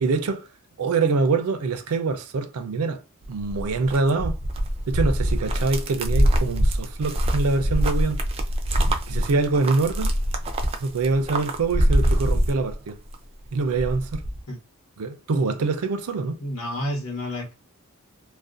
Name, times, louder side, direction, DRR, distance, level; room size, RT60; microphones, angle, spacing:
voice 1, 0.0-0.5 0.8-3.0 3.3-4.4 4.9-8.2 9.1-10.1 10.8-13.0 13.5-14.2 15.0-16.4, right 3 dB, 90° right, 0.4 m, -24 dB
sound 1, 3.2-13.2 13.5-14.4, equal, 25° right, 0.3 m, -24 dB
voice 2, 16.4-17.5, left 1 dB, 75° left, 1.0 m, -30 dB
2.4 x 2.2 x 2.4 m
head